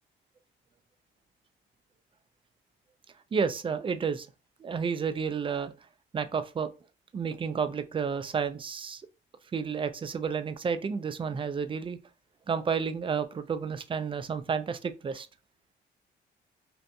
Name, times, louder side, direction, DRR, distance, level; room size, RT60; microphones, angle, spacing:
voice 1, 3.3-4.3 4.6-5.7 6.1-6.7 7.1-9.0 9.5-12.0 12.5-15.3, right 6 dB, 25° right, 0.4 m, -31 dB
2.6 x 2.5 x 2.2 m
cardioid pair, 90°, 20 cm